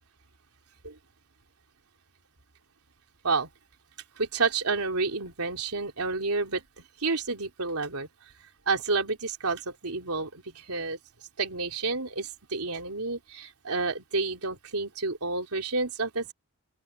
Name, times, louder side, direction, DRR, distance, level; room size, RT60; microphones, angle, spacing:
voice 1, 4.2-6.6 7.0-8.1 8.7-11.0 11.4-16.3, right 3 dB, 85° right, 3.5 m, -30 dB
open air
head